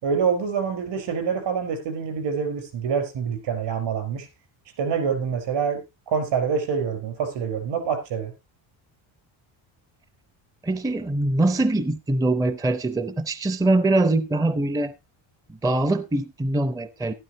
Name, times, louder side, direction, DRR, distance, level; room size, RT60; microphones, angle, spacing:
voice 1, 0.0-4.3 4.8-5.8 6.1-8.3, right 6 dB, 65° right, 5.1 m, -26 dB
voice 2, 10.6-14.9 15.5-17.1, right 2 dB, 10° right, 0.5 m, -23 dB
12.5 x 12.0 x 3.0 m
cardioid pair, 120°, 47 cm